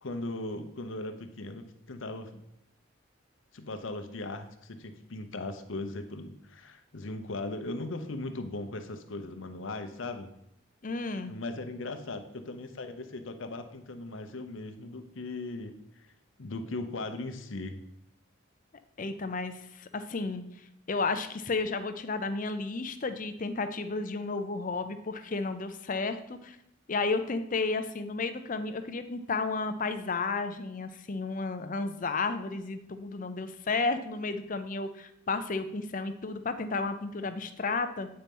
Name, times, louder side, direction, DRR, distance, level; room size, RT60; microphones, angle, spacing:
voice 1, 0.0-2.4 3.5-10.3 11.3-16.1 16.4-17.8, left 2 dB, 70° left, 8 dB, 0.8 m, -38 dB
voice 2, 10.8-11.3 19.0-20.4 20.9-26.6 26.9-38.1, left 3 dB, 40° left, 10 dB, 0.6 m, -32 dB
8.6 x 4.4 x 5.3 m, 0.79 s
head